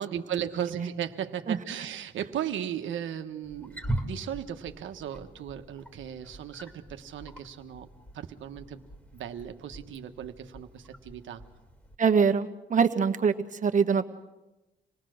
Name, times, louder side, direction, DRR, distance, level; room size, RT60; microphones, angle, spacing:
voice 1, 0.0-7.9 8.1-8.8 9.1-11.4, right 10 dB, 75° right, 7 dB, 1.4 m, -36 dB
Wild animals, 3.4-12.0, right 1 dB, 10° left, 2.2 m, -41 dB
voice 2, 12.0-14.1, right 6 dB, 40° right, 8 dB, 1.4 m, -24 dB
27.0 x 18.5 x 6.5 m, 1.0 s
cardioid pair, 90°, 20 cm